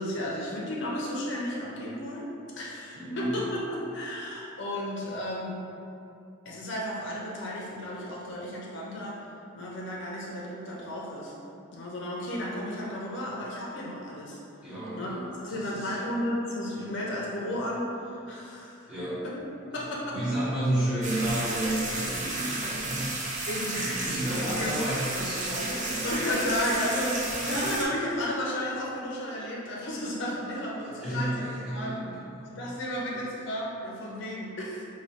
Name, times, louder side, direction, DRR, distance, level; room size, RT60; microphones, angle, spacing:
voice 1, 0.0-2.3 2.6-5.6 6.5-9.2 9.5-11.3 11.7-14.4 14.9-15.1 15.4-18.9 19.2-19.3 19.7-20.2 23.5-23.7 24.5-24.8 26.0-31.4 31.7-32.0 32.4-34.8, left 1 dB, 60° left, -4 dB, 0.5 m, -33 dB
voice 2, 2.9-3.4 14.6-15.2 15.5-16.0 18.9-19.2 20.1-23.1 23.7-27.0 27.5-27.6 30.9-32.7, right 1 dB, 5° right, -12 dB, 1.0 m, -32 dB
sound 1, 21.0-27.9, right 2 dB, 35° right, 0.5 m, -33 dB
3.9 x 2.2 x 3.4 m, 2.7 s
head